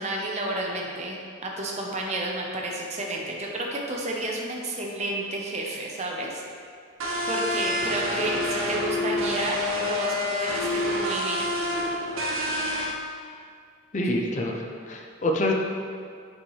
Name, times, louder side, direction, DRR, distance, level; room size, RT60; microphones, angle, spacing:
voice 1, 0.0-6.4 7.3-11.5, right 1 dB, 30° right, -1 dB, 0.8 m, -31 dB
sound 1, 7.0-12.9, left 1 dB, 75° right, 0.8 m, -27 dB
voice 2, 13.9-15.5, left 1 dB, 35° left, 1 dB, 0.5 m, -26 dB
8.5 x 5.2 x 3.2 m, 2.2 s
head